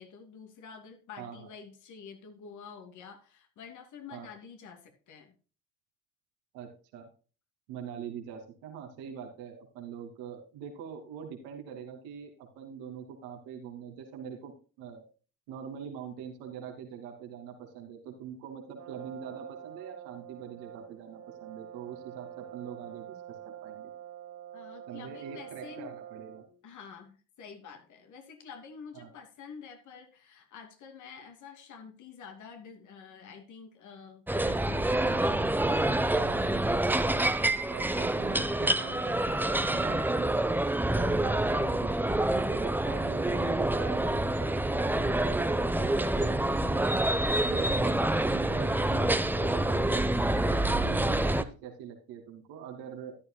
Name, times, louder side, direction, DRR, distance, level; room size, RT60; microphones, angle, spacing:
voice 1, 0.0-5.3 24.5-25.9 26.6-36.6 47.7-47.8, left 6 dB, 65° left, 7 dB, 2.6 m, -48 dB
voice 2, 1.2-1.5 4.1-4.3 6.5-7.1 7.7-14.5 14.8-15.0 15.5-23.9 24.9-26.4 28.9-29.1 36.2-36.4 37.7-40.4 40.9-46.8 47.4-47.9 48.3-50.2 50.7-53.1, right 7 dB, 90° right, 3 dB, 2.6 m, -43 dB
Brass instrument, 18.8-26.6, right 11 dB, 65° right, 2.6 m, -46 dB
sound 1, 34.3-51.4, right 1 dB, 5° right, 0.9 m, -27 dB
13.0 x 11.0 x 2.2 m, 0.35 s
supercardioid pair, 75°, 32 cm